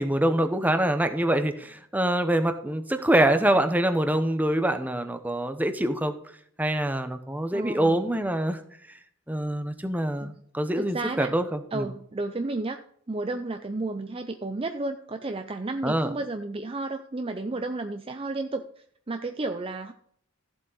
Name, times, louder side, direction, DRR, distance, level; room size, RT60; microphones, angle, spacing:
voice 1, 0.0-6.1 6.6-8.6 8.9-9.0 9.3-11.9 15.8-16.1, right 1 dB, 5° right, 8 dB, 0.8 m, -25 dB
voice 2, 7.5-8.1 10.2-10.4 10.8-11.4 11.7-12.8 13.1-19.9, right 2 dB, 25° right, 8 dB, 0.4 m, -32 dB
14.5 x 7.6 x 4.0 m, 0.64 s
head